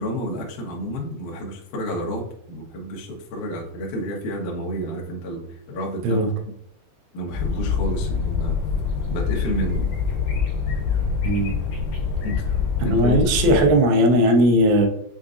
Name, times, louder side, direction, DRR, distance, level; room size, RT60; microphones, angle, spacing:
voice 1, 0.0-6.3 7.1-8.6 9.1-9.9 12.2-12.4 12.8-13.6, equal, 80° left, -2 dB, 1.8 m, -30 dB
sound 1, 7.3-13.7, left 5 dB, 60° left, 2.6 m, -25 dB
voice 2, 11.2-11.6 12.9-14.9, right 1 dB, 80° right, 4 dB, 2.9 m, -18 dB
7.1 x 2.6 x 2.4 m, 0.72 s
omnidirectional pair, 5.2 m